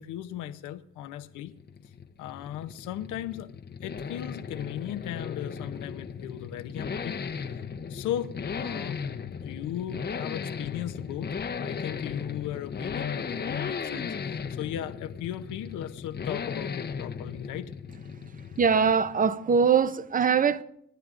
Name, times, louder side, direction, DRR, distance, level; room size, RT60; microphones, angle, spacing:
voice 1, 0.0-1.5 2.2-3.5 3.8-7.6 7.9-9.0 9.4-11.3 11.6-17.7, left 11 dB, 90° left, 0.7 m, -37 dB
sound 1, 1.3-19.3, left 6 dB, 35° left, 0.7 m, -36 dB
voice 2, 18.6-20.6, right 6 dB, 30° right, 0.6 m, -22 dB
27.0 x 10.5 x 2.5 m
cardioid pair, 90°, 30 cm